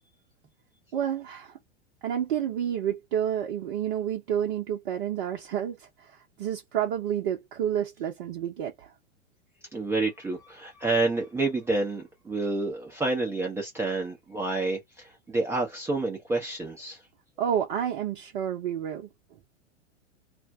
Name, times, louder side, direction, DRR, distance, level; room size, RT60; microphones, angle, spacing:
voice 1, 0.9-1.5 2.0-5.8 6.4-8.9 17.4-19.1, right 9 dB, 45° right, 0.7 m, -29 dB
voice 2, 9.7-17.1, right 3 dB, 5° right, 0.6 m, -29 dB
2.5 x 2.1 x 3.4 m
figure-of-eight pair, 95°, 36 cm